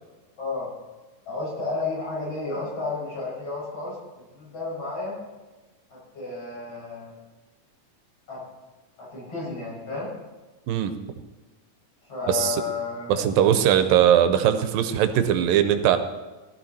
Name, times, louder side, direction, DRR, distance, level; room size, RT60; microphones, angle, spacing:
voice 1, 0.4-0.7 1.3-4.0 4.3-5.2 5.9-7.2 8.3-8.4 9.0-10.1 12.1-13.2, left 3 dB, 45° left, -6 dB, 7.8 m, -32 dB
voice 2, 12.3-12.6 13.1-16.0, right 10 dB, 90° right, 9 dB, 2.7 m, -20 dB
19.0 x 12.5 x 4.4 m, 1.2 s
omnidirectional pair, 3.9 m